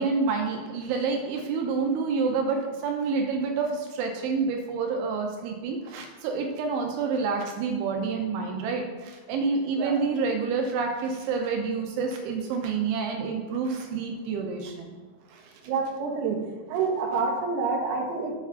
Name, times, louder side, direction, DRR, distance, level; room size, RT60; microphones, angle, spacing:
voice 1, 0.0-15.0 15.3-15.5, right 4 dB, 85° right, 2 dB, 3.1 m, -28 dB
voice 2, 15.7-16.4 16.7-18.3, right 4 dB, 70° right, -2 dB, 2.8 m, -27 dB
7.1 x 4.9 x 5.6 m, 1.3 s
omnidirectional pair, 5.4 m